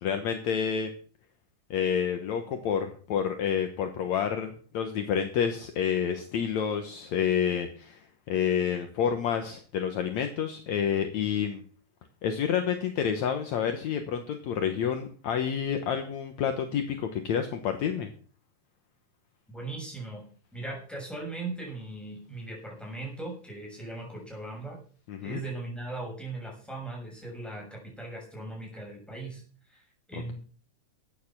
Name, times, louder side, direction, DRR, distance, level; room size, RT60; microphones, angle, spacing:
voice 1, 0.0-0.9 1.7-11.6 12.2-18.1 25.1-25.4, left 8 dB, 65° left, 6 dB, 2.3 m, -29 dB
voice 2, 19.5-20.2 20.5-24.8 25.2-29.4 29.7-30.3, right 2 dB, ahead, -2 dB, 6.7 m, -39 dB
13.5 x 9.3 x 6.0 m, 0.44 s
omnidirectional pair, 3.6 m